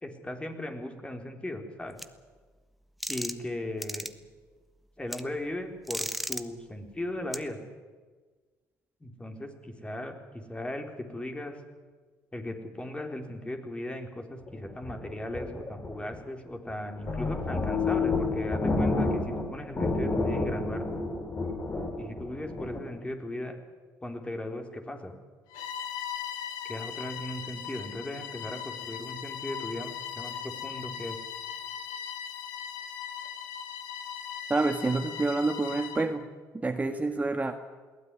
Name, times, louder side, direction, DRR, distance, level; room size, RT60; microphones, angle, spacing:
voice 1, 0.0-2.0 3.1-4.1 5.0-7.6 9.0-11.6 12.3-20.8 22.0-23.6 24.0-25.1 26.6-31.2, left 1 dB, 15° left, 4 dB, 4.1 m, -37 dB
sound 1, 2.0-2.1 3.0-3.5 3.8-4.1 5.1-5.2 5.9-6.4 7.3-7.4, equal, ahead, 1.4 m, -34 dB
sound 2, 14.5-16.2 16.7-16.8 17.0-19.5 19.8-22.8, left 3 dB, 35° left, 5.2 m, -30 dB
Bowed string instrument, 25.5-36.1, left 8 dB, 80° left, 2.3 m, -39 dB
voice 2, 34.5-36.3 36.6-37.6, right 3 dB, 20° right, 6 dB, 1.7 m, -28 dB
21.5 x 16.5 x 9.9 m, 1.4 s
supercardioid pair, 65°, 7 cm